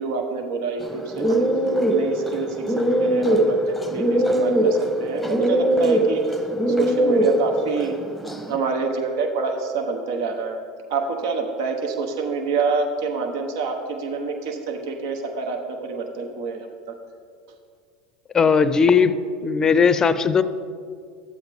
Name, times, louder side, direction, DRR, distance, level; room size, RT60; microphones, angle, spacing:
voice 1, 0.0-1.5 1.9-6.2 6.7-8.0 8.5-10.6 10.9-17.0, right 4 dB, 70° right, 4 dB, 1.0 m, -27 dB
sound 1, 0.8-8.6, right 1 dB, 5° right, 1.1 m, -21 dB
voice 2, 18.3-19.1 19.4-20.4, left 6 dB, 25° left, 13 dB, 0.5 m, -17 dB
13.0 x 7.8 x 3.5 m, 2.2 s
hypercardioid pair, 85°, 2 cm